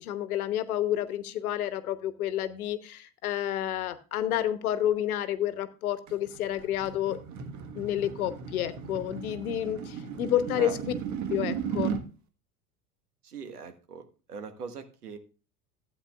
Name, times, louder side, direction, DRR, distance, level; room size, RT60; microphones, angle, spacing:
voice 1, 0.0-7.2 7.7-10.9 11.3-11.9, left 11 dB, 70° left, 12 dB, 1.1 m, -30 dB
sound 1, 6.1-12.1, right 7 dB, 40° right, 1.6 m, -36 dB
voice 2, 13.2-15.2, right 5 dB, 80° right, 8 dB, 1.5 m, -41 dB
15.5 x 8.7 x 2.4 m, 0.34 s
figure-of-eight pair, 75°, 45 cm